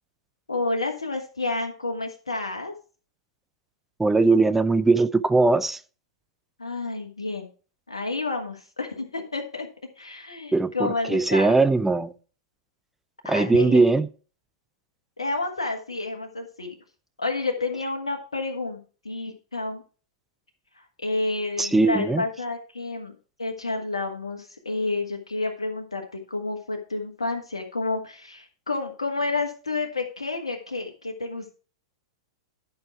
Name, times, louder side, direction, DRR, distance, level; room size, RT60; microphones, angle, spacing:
voice 1, 0.5-2.7 6.6-7.5 7.9-9.7 10.0-11.6 13.2-13.8 15.2-16.8 17.2-18.8 19.0-19.8 20.8-31.6, left 3 dB, 85° left, 1.5 m, -30 dB
voice 2, 4.0-5.8 10.5-12.1 13.3-14.1 21.6-22.2, right 3 dB, 10° right, 0.5 m, -20 dB
11.5 x 5.6 x 4.5 m
hypercardioid pair, 105°, 3 cm